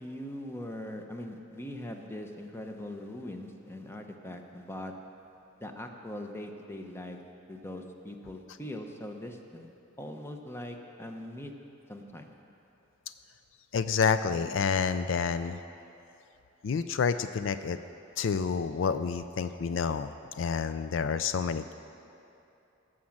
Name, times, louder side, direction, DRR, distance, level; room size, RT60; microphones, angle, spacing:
voice 1, 0.0-4.9 5.6-7.2 7.5-9.7 10.0-11.5 11.9-12.3, left 1 dB, 15° left, 3 dB, 0.9 m, -41 dB
voice 2, 13.7-15.6 16.6-17.8 18.2-20.1 20.4-21.7, left 6 dB, 70° left, 11 dB, 0.4 m, -29 dB
17.5 x 6.4 x 7.3 m, 2.8 s
head